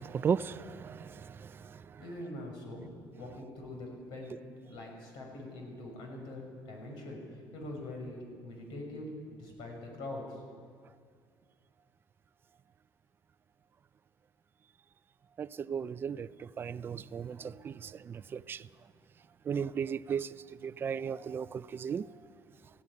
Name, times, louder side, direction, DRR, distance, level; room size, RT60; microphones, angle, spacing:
voice 1, 0.0-2.0 15.4-18.7 19.4-22.1, right 7 dB, 30° right, 0.5 m, -36 dB
voice 2, 2.0-2.9 3.2-10.4, left 1 dB, 75° left, 6.4 m, -43 dB
17.5 x 15.5 x 9.8 m
cardioid pair, 155°, 8 cm